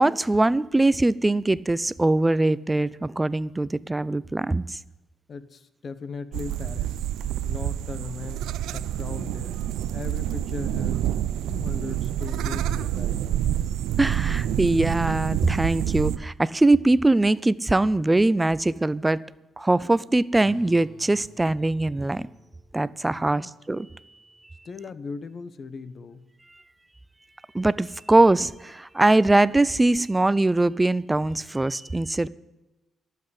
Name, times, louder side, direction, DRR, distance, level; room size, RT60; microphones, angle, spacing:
voice 1, 0.0-4.8 14.0-19.2 19.6-22.3 22.7-23.9 27.5-32.3, right 2 dB, 15° right, 19 dB, 0.5 m, -22 dB
voice 2, 5.3-7.1 7.4-11.1 11.4-13.5 23.1-23.5 24.6-26.3, left 4 dB, 45° left, 14 dB, 1.1 m, -38 dB
sound 1, 6.3-16.2, right 11 dB, 90° right, 0.5 m, -28 dB
sound 2, 20.4-25.5, right 1 dB, 5° left, 6.3 m, -53 dB
12.0 x 7.6 x 9.6 m, 1.1 s
cardioid pair, 90°, 0 cm